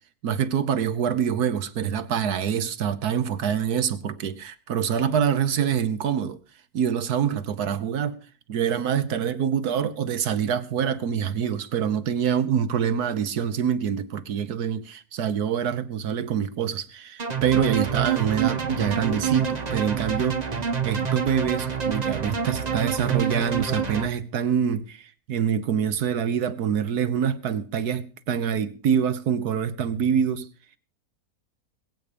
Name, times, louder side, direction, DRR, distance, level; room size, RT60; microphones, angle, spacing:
voice 1, 0.2-6.4 6.7-8.2 8.5-20.4 20.8-30.5, right 8 dB, 85° right, 1.6 m, -25 dB
sound 1, 17.2-24.1, right 7 dB, 30° right, 1.1 m, -27 dB
20.5 x 8.8 x 5.2 m
omnidirectional pair, 1.6 m